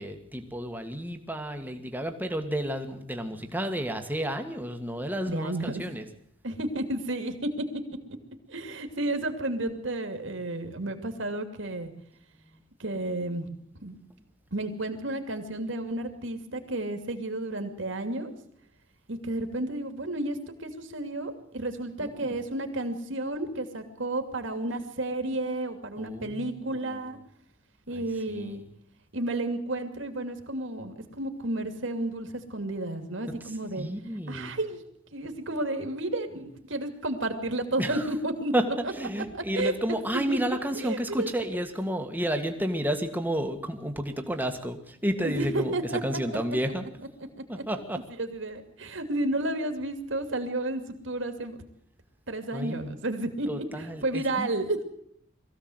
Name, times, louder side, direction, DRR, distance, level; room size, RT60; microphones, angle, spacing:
voice 1, 0.0-6.1 12.5-12.6 22.0-22.4 26.0-27.0 27.9-28.6 33.4-34.6 37.8-38.1 38.5-46.8 47.5-48.0 52.5-53.0 53.5-54.6, equal, 10° right, 5 dB, 1.8 m, -31 dB
voice 2, 5.3-5.8 6.4-7.3 8.5-11.9 12.8-13.5 13.8-14.0 14.5-18.3 19.1-27.2 27.9-28.6 29.1-33.9 34.3-34.8 35.1-38.5 39.6-39.7 40.3-40.4 40.8-41.3 41.9-42.0 45.2-46.0 47.3-47.6 48.2-51.6 52.3-54.8, right 2 dB, 60° right, 6 dB, 2.7 m, -32 dB
22.0 x 15.5 x 8.0 m, 0.68 s
head